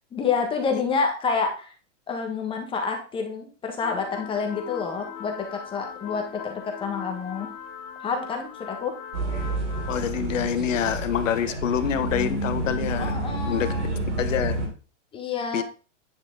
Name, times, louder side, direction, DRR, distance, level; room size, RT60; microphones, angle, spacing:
voice 1, 0.1-1.7 2.1-7.5 8.0-8.9 12.9-13.9 15.1-15.6, left 5 dB, 15° left, 1.4 m, -28 dB
sound 1, 3.8-10.1, left 8 dB, 50° left, 1.9 m, -40 dB
sound 2, 9.1-14.7, right 2 dB, 70° right, 4.2 m, -29 dB
voice 2, 9.9-13.1 13.5-13.7 14.2-14.6 15.5-15.6, left 9 dB, 85° left, 1.2 m, -26 dB
9.6 x 6.0 x 3.7 m
supercardioid pair, 155°, 37 cm